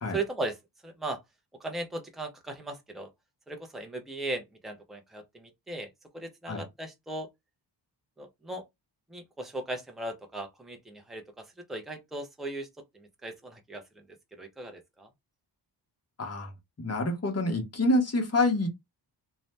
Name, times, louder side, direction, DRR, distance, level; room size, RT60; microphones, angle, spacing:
voice 1, 0.1-0.6 0.8-1.2 1.6-3.1 3.5-7.3 8.2-8.6 9.1-12.7 12.9-14.1 14.3-15.1, right 2 dB, ahead, 0.4 m, -38 dB
voice 2, 16.2-16.5 16.8-18.7, left 2 dB, 35° left, 0.9 m, -27 dB
2.6 x 2.1 x 3.2 m
wide cardioid pair, 155°, 46 cm